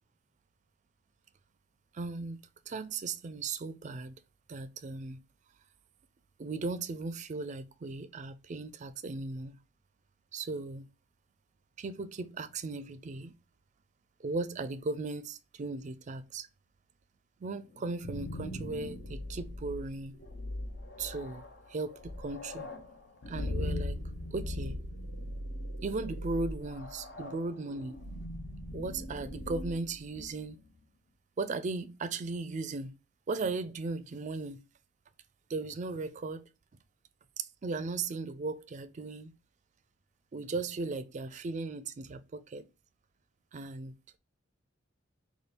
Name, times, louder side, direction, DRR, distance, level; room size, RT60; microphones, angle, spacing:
voice 1, 1.9-2.4 2.7-4.2 4.5-5.2 6.4-9.6 10.3-10.9 11.8-13.3 14.2-16.5 17.4-20.2 21.0-21.4 21.7-22.7 23.3-24.0 24.3-24.8 25.8-28.0 28.7-30.6 31.4-32.9 33.3-34.6 35.5-36.4 37.4-39.3 40.3-42.7 43.5-43.9, right 3 dB, 35° right, 0.4 m, -37 dB
sound 1, 17.8-30.6, left 1 dB, 55° left, 0.7 m, -40 dB
4.2 x 2.3 x 3.2 m
head